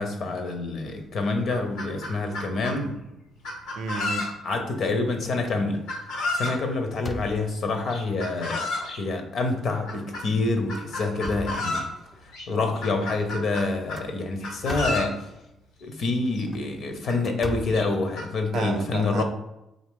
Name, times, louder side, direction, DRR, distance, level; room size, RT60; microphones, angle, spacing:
voice 1, 0.0-3.0 4.4-5.9 6.3-11.9 12.2-15.3 15.8-19.2, left 3 dB, 60° left, 5 dB, 0.7 m, -27 dB
Chicken rooster, 0.9-1.0 1.3-2.8 3.4-4.6 5.9-6.6 7.9-9.0 9.9-10.3 10.7-11.9 12.3-12.5 12.8-14.1 14.4-15.1 16.1-16.2 16.4-16.5 17.1-17.2 17.7-18.3, left 2 dB, 85° left, 0.9 m, -31 dB
voice 2, 3.7-4.3 18.5-19.2, right 4 dB, 70° right, 7 dB, 0.5 m, -31 dB
sound 1, 4.7-5.2 5.6-5.9 6.2-7.8 8.5-8.6 9.0-9.1 10.0-10.3 10.7-12.2 13.7-15.2 16.3-18.6, left 2 dB, 25° left, 0.3 m, -39 dB
3.8 x 2.8 x 3.6 m, 0.89 s
cardioid pair, 105°, 0 cm